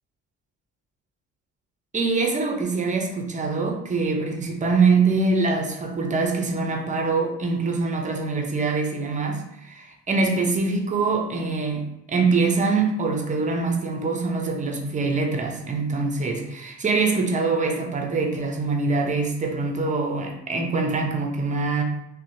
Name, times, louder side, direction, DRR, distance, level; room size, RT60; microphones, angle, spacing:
voice 1, 1.9-21.8, right 4 dB, 25° right, 2 dB, 0.5 m, -24 dB
2.8 x 2.1 x 2.6 m, 0.83 s
cardioid pair, 90°, 30 cm